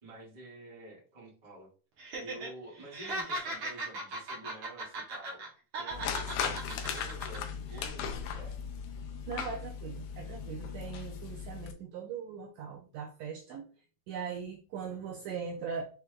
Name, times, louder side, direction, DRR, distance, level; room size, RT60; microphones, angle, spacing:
voice 1, 0.0-1.7 2.2-5.5 5.8-8.5, right 1 dB, 25° right, -5 dB, 0.9 m, -49 dB
Laughter, 2.0-2.5 2.8-5.5 5.7-7.4 7.7-7.9, right 2 dB, 55° right, 1.6 m, -38 dB
sound 1, 5.9-11.7, left 7 dB, 80° left, 1.6 m, -38 dB
voice 2, 9.3-13.7 14.1-15.8, right 6 dB, 80° right, 2 dB, 1.6 m, -40 dB
5.8 x 3.2 x 2.2 m, 0.36 s
omnidirectional pair, 3.6 m